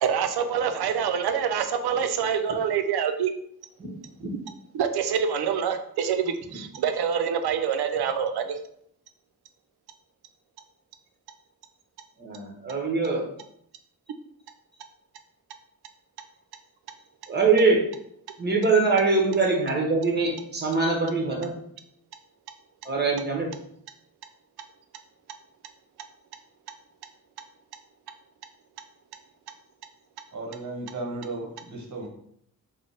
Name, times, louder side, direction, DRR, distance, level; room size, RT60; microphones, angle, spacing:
voice 1, 0.0-3.3 4.7-8.6, right 7 dB, 85° right, 8 dB, 0.5 m, -26 dB
voice 2, 12.2-13.3 17.3-17.9 18.4-21.5 22.8-23.5, right 4 dB, 25° right, 0 dB, 1.1 m, -23 dB
voice 3, 30.3-32.1, right 2 dB, 50° right, 1 dB, 1.0 m, -35 dB
3.2 x 2.1 x 4.0 m, 0.69 s
cardioid pair, 65°, 37 cm